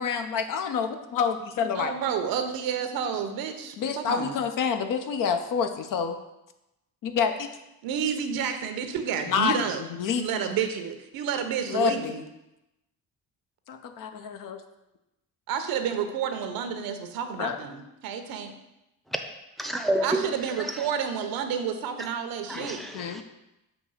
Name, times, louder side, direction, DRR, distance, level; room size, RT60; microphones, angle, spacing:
voice 1, 0.0-1.9 3.8-6.2 7.0-7.5 9.3-10.2 11.6-12.2 13.7-14.6 17.4-17.6 22.5-22.7 22.9-23.2, left 7 dB, 65° left, 0.7 m, -28 dB
voice 2, 1.7-4.4 7.8-9.8 10.2-12.2 15.5-18.5 20.0-22.8, right 7 dB, 80° right, 0.8 m, -30 dB
voice 3, 19.6-20.3 20.6-20.9 22.5-23.2, right 1 dB, ahead, 0.6 m, -29 dB
6.8 x 2.9 x 5.5 m
cardioid pair, 100°, 35 cm